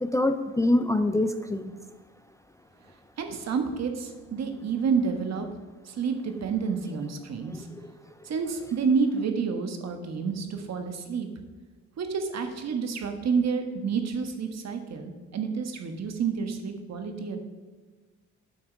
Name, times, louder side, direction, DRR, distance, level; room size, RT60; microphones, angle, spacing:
voice 1, 0.0-1.7 7.5-7.9, left 1 dB, 10° left, 9 dB, 0.4 m, -25 dB
voice 2, 3.2-5.5 5.8-7.7 8.2-11.3 12.0-17.4, right 5 dB, 60° right, 6 dB, 1.4 m, -29 dB
8.0 x 6.1 x 6.1 m, 1.3 s
cardioid pair, 90°, 30 cm